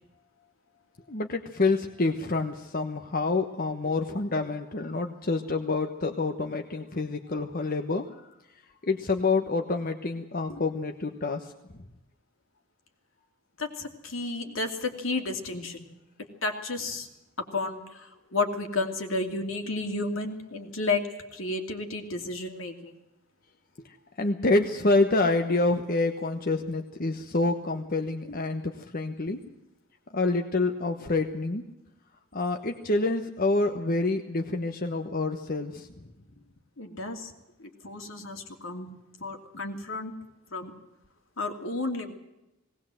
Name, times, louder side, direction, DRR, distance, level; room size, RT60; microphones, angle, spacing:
voice 1, 1.1-8.1 8.8-11.5 23.8-29.4 30.1-31.6 32.3-35.9, left 3 dB, 45° left, 4 dB, 1.2 m, -27 dB
voice 2, 13.6-15.8 16.4-17.1 17.4-21.1 21.3-23.0 28.3-28.4 36.8-37.3 37.6-38.9 39.2-40.1 40.5-40.7 41.4-42.1, left 3 dB, 70° left, 4 dB, 2.8 m, -32 dB
19.0 x 19.0 x 7.8 m, 0.94 s
head